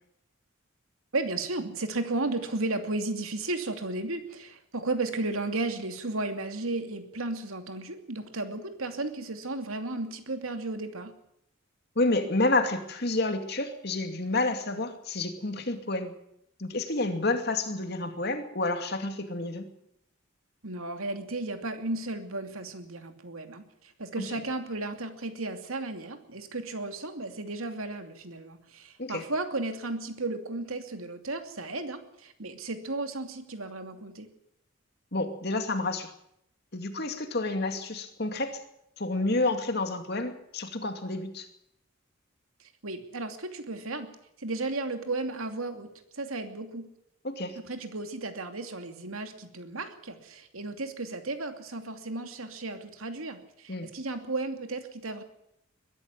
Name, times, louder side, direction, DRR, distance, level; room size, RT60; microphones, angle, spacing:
voice 1, 1.1-11.1 20.6-34.3 42.6-44.1 44.4-45.9 46.1-46.9 47.6-55.2, right 2 dB, 85° right, 6 dB, 2.7 m, -34 dB
voice 2, 12.0-16.1 16.6-19.7 24.2-24.3 29.0-29.2 35.1-36.1 36.7-38.6 39.0-41.5 47.2-47.6 53.7-53.9, left 2 dB, 50° left, 6 dB, 2.5 m, -29 dB
22.0 x 13.0 x 9.7 m, 0.77 s
head